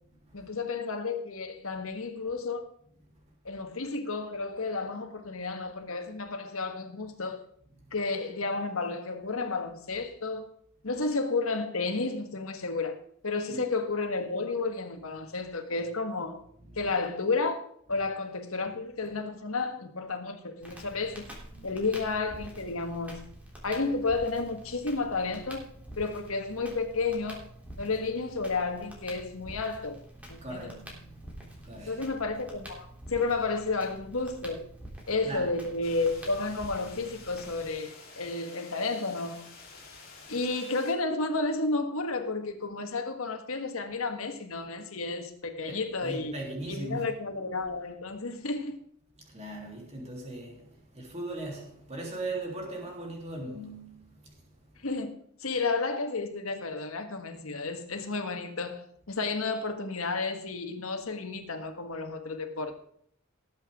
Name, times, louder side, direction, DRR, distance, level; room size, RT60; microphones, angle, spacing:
voice 1, 0.3-2.6 3.4-7.5 7.9-10.5 10.8-13.0 13.2-16.4 16.8-17.6 17.9-21.3 21.6-23.2 23.6-25.6 26.0-30.0 30.3-30.7 31.9-34.6 35.1-39.5 40.3-46.3 46.7-48.8 54.8-62.7, left 3 dB, 75° left, 1.6 m, -32 dB
voice 2, 16.6-16.9 21.5-21.8 27.6-27.9 30.2-32.0 35.2-35.6 45.7-47.1 49.2-54.8, right 2 dB, 30° right, 3.4 m, -40 dB
Crackle, 20.6-37.7, right 1 dB, 5° right, 3.3 m, -47 dB
sound 1, 35.8-40.9, left 4 dB, 45° left, 3.3 m, -50 dB
19.0 x 8.0 x 3.7 m
head